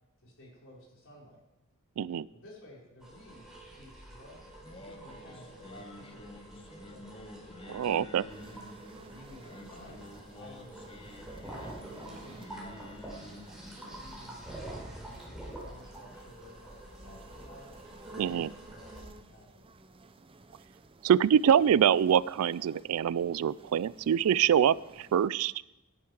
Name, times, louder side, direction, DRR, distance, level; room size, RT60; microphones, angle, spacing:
voice 1, 0.2-1.4 2.3-7.2 8.4-12.8 13.2-17.7 18.1-19.7, left 1 dB, 60° left, -4 dB, 4.6 m, -54 dB
voice 2, 2.0-2.3 7.7-8.3 18.2-18.5 21.0-25.5, right 9 dB, 75° right, 22 dB, 0.3 m, -25 dB
sound 1, 3.0-19.0, right 1 dB, 5° right, 3.8 m, -47 dB
Singing, 4.6-15.7, left 1 dB, 25° left, 1.0 m, -50 dB
sound 2, 8.3-25.3, right 3 dB, 25° right, 0.6 m, -55 dB
15.0 x 10.5 x 4.8 m, 1.0 s
head